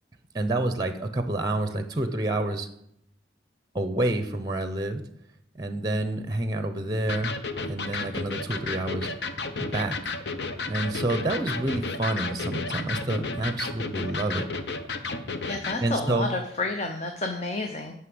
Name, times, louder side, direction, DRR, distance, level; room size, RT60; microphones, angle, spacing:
voice 1, 0.3-2.7 3.7-5.0 5.5-7.3 7.7-9.1 9.6-10.1 10.7-14.4 15.8-16.3, right 2 dB, 20° right, 9 dB, 0.7 m, -28 dB
Electric guitar, 7.1-15.8, left 3 dB, 70° left, 0.9 m, -32 dB
voice 2, 15.5-17.9, left 2 dB, 40° left, 4 dB, 0.8 m, -30 dB
9.4 x 5.9 x 7.8 m, 0.74 s
head